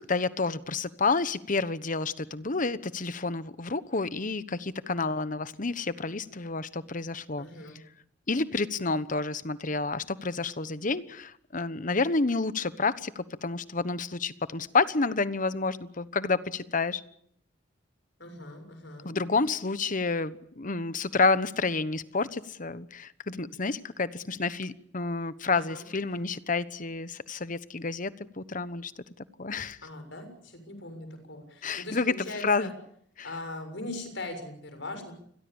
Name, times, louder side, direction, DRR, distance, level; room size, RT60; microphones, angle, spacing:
voice 1, 0.0-7.5 8.3-17.0 19.0-28.9 29.4-29.8 31.6-32.1 32.4-32.7 33.2-33.3, left 3 dB, 45° left, 15 dB, 1.2 m, -29 dB
voice 2, 7.4-7.8 18.2-19.1 25.5-26.3 29.8-32.7 33.2-35.1, left 2 dB, 70° left, 8 dB, 6.9 m, -40 dB
29.0 x 22.0 x 7.2 m, 0.66 s
head